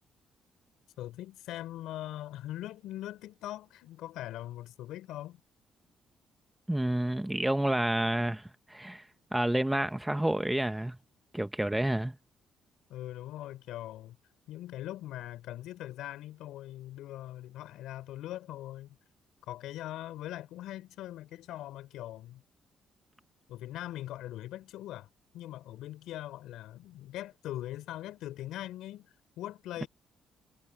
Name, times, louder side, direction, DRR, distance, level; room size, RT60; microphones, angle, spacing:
voice 1, 1.0-5.4 12.9-14.2 14.5-19.0 19.5-22.4 23.5-25.1 25.3-29.9, left 14 dB, 90° left, 5.4 m, -41 dB
voice 2, 6.7-9.0 9.3-11.0 11.3-12.1, right 1 dB, 5° right, 1.0 m, -29 dB
cardioid pair, 90°, 0 cm